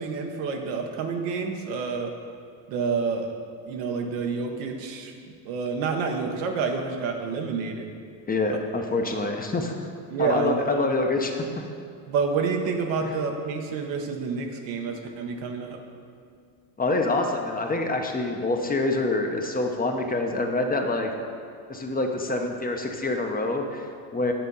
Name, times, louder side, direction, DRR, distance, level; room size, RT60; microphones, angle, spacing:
voice 1, 0.0-2.1 2.7-3.3 3.7-5.1 5.4-7.9 8.5-8.6 10.1-10.7 12.1-15.8, right 5 dB, 80° right, 3 dB, 1.0 m, -28 dB
voice 2, 8.3-9.7 10.2-11.5 13.0-13.1 16.8-21.1 21.7-24.3, left 2 dB, 20° left, 3 dB, 0.7 m, -26 dB
8.7 x 3.6 x 5.4 m, 2.3 s
supercardioid pair, 90°, 45 cm